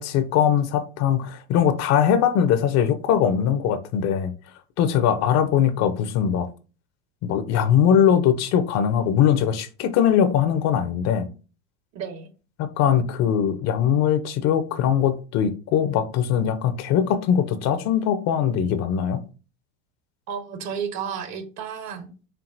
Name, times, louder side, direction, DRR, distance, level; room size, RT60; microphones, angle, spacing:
voice 1, 0.0-4.3 4.8-6.5 7.2-11.3 12.6-19.2, left 8 dB, 45° left, 0.6 m, -21 dB
voice 2, 11.9-12.3 20.3-22.3, right 7 dB, 50° right, 1.0 m, -32 dB
4.6 x 3.5 x 2.5 m
supercardioid pair, 115°, 36 cm